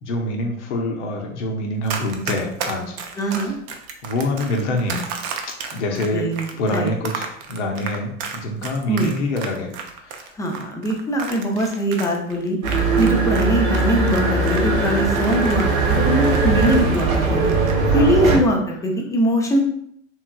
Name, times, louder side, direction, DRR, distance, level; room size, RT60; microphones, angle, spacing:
voice 1, 0.0-3.5 4.0-5.1 5.7-6.3 6.6-9.7 10.0-10.3 17.9-18.4, left 1 dB, 60° left, 2 dB, 0.8 m, -26 dB
Run, 1.9-13.5 13.7-17.2 17.4-17.8, right 6 dB, 40° right, 0.6 m, -32 dB
voice 2, 3.2-3.5 6.1-6.9 8.9-9.1 10.4-17.7 17.9-19.6, right 1 dB, 10° left, 0 dB, 0.5 m, -22 dB
sound 1, 12.6-18.4, right 3 dB, 80° right, 0.8 m, -19 dB
3.5 x 3.1 x 2.3 m, 0.70 s
figure-of-eight pair, 80°, 40 cm